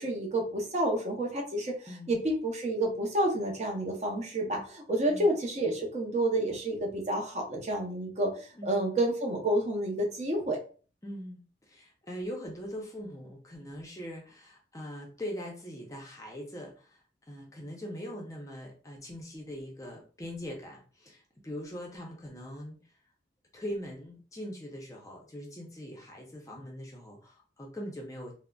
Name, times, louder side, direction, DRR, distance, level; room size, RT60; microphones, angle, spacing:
voice 1, 0.0-1.7 2.1-10.6, right 1 dB, 40° right, 0 dB, 0.6 m, -29 dB
voice 2, 8.6-8.9 11.0-17.0 17.3-22.9 23.5-28.3, equal, 20° left, -1 dB, 0.5 m, -41 dB
3.6 x 2.0 x 2.2 m, 0.39 s
head